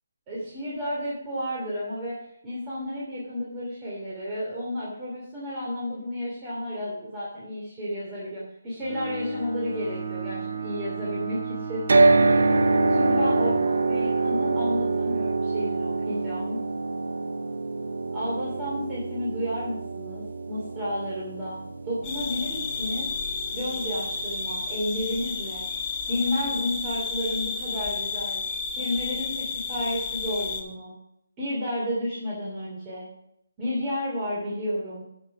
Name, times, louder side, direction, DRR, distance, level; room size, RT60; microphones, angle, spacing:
voice 1, 0.3-2.2 2.4-11.8 12.1-12.4 12.9-16.6 18.1-21.6 21.8-23.1 23.5-25.7 26.1-30.9 31.4-33.1 33.6-35.0, left 1 dB, 20° right, -7 dB, 3.0 m, -32 dB
Bowed string instrument, 8.8-13.7, equal, 50° right, 3.1 m, -31 dB
sound 1, 11.9-26.0, right 3 dB, 70° right, 0.8 m, -26 dB
sound 2, 22.0-30.6, left 5 dB, 20° left, 1.5 m, -32 dB
10.5 x 6.4 x 4.9 m, 0.80 s
figure-of-eight pair, 155°, 0 cm